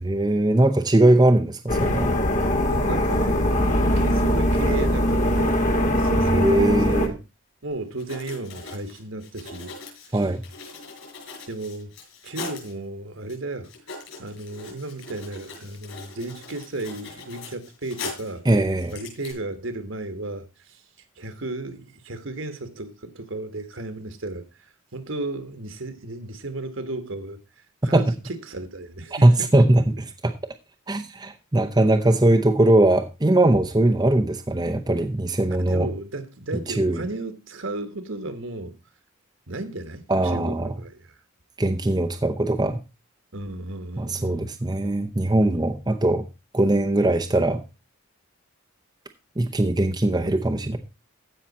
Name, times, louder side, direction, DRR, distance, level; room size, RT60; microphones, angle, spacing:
voice 1, 0.0-2.1 6.3-7.1 10.1-10.4 18.5-18.9 27.9-28.0 29.2-29.8 30.2-30.3 30.9-35.9 36.7-37.0 40.1-40.7 41.6-42.8 44.0-46.2 46.5-47.6 49.4-50.8, right 1 dB, 20° right, 0.7 m, -20 dB
sound 1, 1.7-7.1, equal, 35° left, 1.7 m, -21 dB
voice 2, 2.4-5.6 5.9-7.2 7.6-9.7 10.1-10.3 11.5-11.9 12.2-13.7 14.2-18.4 18.9-20.8 21.2-27.4 27.8-29.7 35.6-38.7 39.5-41.2 43.3-44.5, right 2 dB, 65° right, 1.5 m, -34 dB
Writing, 8.0-12.7 13.3-13.4 13.6-18.4 18.8-19.3, left 4 dB, 65° left, 6.1 m, -40 dB
15.0 x 5.6 x 4.1 m
head